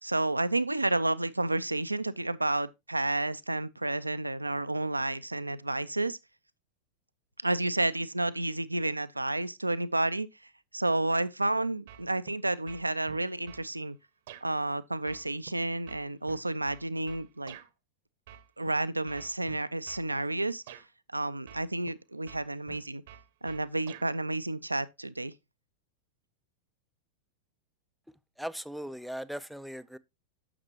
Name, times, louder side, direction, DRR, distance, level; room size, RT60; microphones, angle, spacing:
voice 1, 0.0-6.2 7.4-10.3 10.7-14.0 14.4-17.6 18.6-20.8 21.1-23.0 23.4-25.3, right 2 dB, 85° right, 0.4 m, -31 dB
sound 1, 11.9-12.4 12.7-13.7 14.3-14.5 15.1-17.7 18.3-18.7 19.1-20.1 20.7-20.9 21.5-22.0 22.3-24.1, right 11 dB, 55° right, 0.8 m, -49 dB
voice 2, 28.4-30.0, equal, ahead, 0.4 m, -38 dB
9.8 x 6.7 x 2.8 m
figure-of-eight pair, 90°, 0 cm